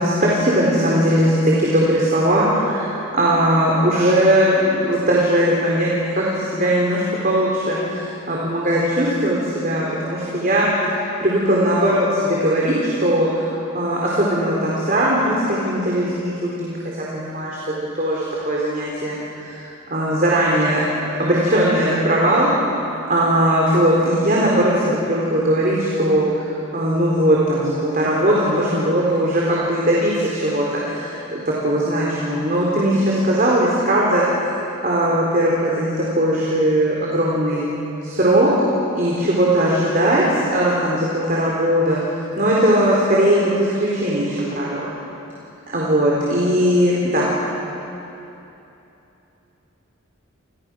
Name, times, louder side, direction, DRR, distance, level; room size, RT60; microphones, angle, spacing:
voice 1, 0.0-10.7 11.2-16.8 17.1-22.5 23.0-37.6 38.0-38.5 38.9-42.0 42.4-44.9 45.7-47.3, right 1 dB, 40° right, -4 dB, 4.2 m, -19 dB
30.0 x 28.0 x 6.4 m, 2.9 s
head